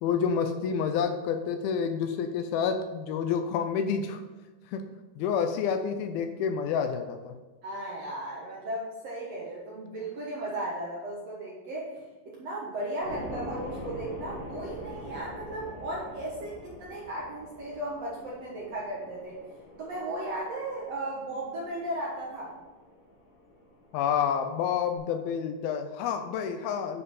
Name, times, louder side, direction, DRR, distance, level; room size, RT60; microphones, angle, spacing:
voice 1, 0.0-4.2 4.7-4.8 5.2-7.3 23.9-27.0, left 7 dB, 80° left, 8 dB, 2.3 m, -29 dB
voice 2, 7.6-19.4 19.8-22.5, right 1 dB, 60° right, -4 dB, 1.7 m, -36 dB
sound 1, 13.0-25.0, left 1 dB, 55° left, 1.0 m, -44 dB
9.6 x 5.3 x 5.3 m, 1.3 s
omnidirectional pair, 4.6 m